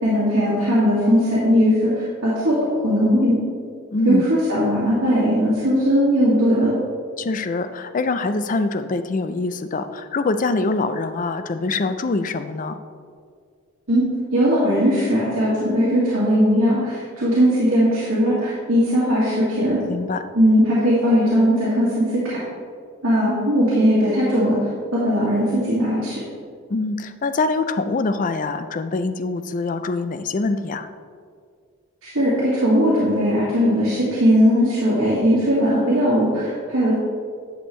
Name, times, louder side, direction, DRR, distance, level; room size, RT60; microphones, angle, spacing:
voice 1, 0.0-2.6 2.8-3.4 4.1-6.7 13.9-14.1 14.3-19.8 20.3-22.4 23.0-24.6 24.9-26.2 32.0-36.9, equal, 70° right, -9 dB, 2.0 m, -19 dB
voice 2, 3.9-4.2 7.2-12.8 19.9-20.2 26.7-30.9, left 3 dB, 40° left, 10 dB, 0.4 m, -24 dB
10.5 x 6.4 x 3.2 m, 2.1 s
head